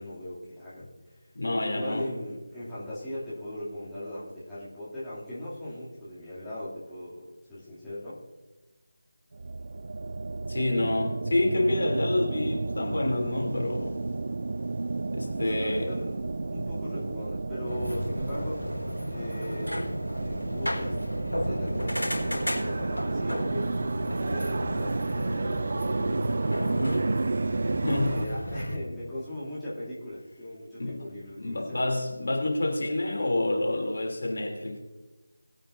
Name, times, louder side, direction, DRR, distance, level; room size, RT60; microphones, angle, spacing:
voice 1, 0.0-1.2 1.6-8.2 15.2-18.6 19.1-19.7 20.2-27.2 27.9-31.9, left 1 dB, 5° left, -14 dB, 2.7 m, -39 dB
voice 2, 1.3-2.1 10.5-14.0 15.1-15.9 27.8-28.2 30.8-31.0 31.4-34.8, left 2 dB, 55° left, 0 dB, 3.1 m, -28 dB
sound 1, 9.3-28.3, right 3 dB, 45° right, 0.3 m, -31 dB
sound 2, 17.6-28.8, equal, 80° left, 4.2 m, -34 dB
20.5 x 8.9 x 2.7 m, 1.1 s
figure-of-eight pair, 160°, 0 cm